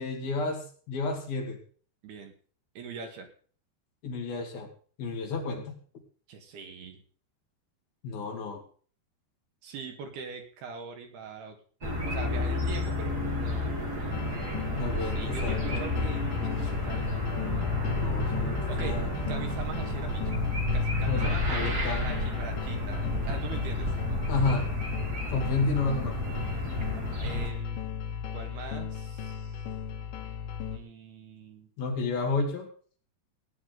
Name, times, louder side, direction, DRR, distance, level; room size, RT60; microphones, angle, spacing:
voice 1, 0.0-1.6 4.0-4.7 5.0-5.8 8.0-8.6 14.7-15.9 18.0-18.6 18.8-19.1 21.1-22.2 24.3-24.7 25.3-26.2 31.8-32.7, left 3 dB, 60° left, 2 dB, 4.1 m, -31 dB
voice 2, 2.0-2.3 2.8-3.3 6.3-7.0 9.6-11.6 12.1-14.0 14.9-17.1 18.7-19.0 19.3-20.3 20.7-23.9 27.2-27.8 28.3-29.7 30.7-31.7, right 5 dB, 65° right, 4 dB, 3.7 m, -42 dB
sound 1, 11.8-27.5, equal, 25° right, 2.7 m, -32 dB
sound 2, 14.1-30.8, left 7 dB, 85° left, 3.7 m, -34 dB
18.0 x 10.0 x 4.0 m, 0.43 s
omnidirectional pair, 5.0 m